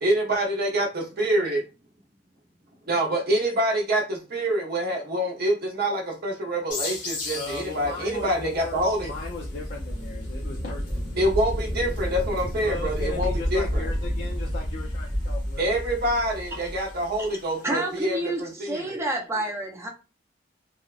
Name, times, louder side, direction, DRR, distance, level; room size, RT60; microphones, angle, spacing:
voice 1, 0.0-1.6 2.9-9.1 11.2-13.9 15.6-19.0, right 1 dB, 55° right, 0.6 m, -26 dB
sound 1, 6.7-18.0, left 4 dB, 70° left, 0.8 m, -42 dB
sound 2, 7.1-17.3, equal, 20° left, 0.7 m, -31 dB
voice 2, 7.3-11.1 12.6-15.8, left 4 dB, 55° left, 0.5 m, -37 dB
voice 3, 17.6-19.9, right 2 dB, 15° right, 0.5 m, -29 dB
2.7 x 2.0 x 2.4 m
head